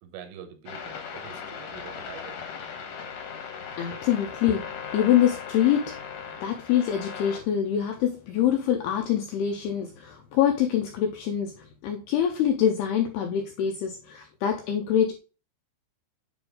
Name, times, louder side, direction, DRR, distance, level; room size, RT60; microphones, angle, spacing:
voice 1, 0.0-2.4, right 9 dB, 90° right, 3.6 m, -45 dB
sound 1, 0.7-7.4, left 7 dB, 70° left, 2.2 m, -38 dB
voice 2, 3.8-6.0 6.4-15.2, left 9 dB, 85° left, 2.3 m, -25 dB
8.9 x 3.5 x 3.8 m
omnidirectional pair, 5.5 m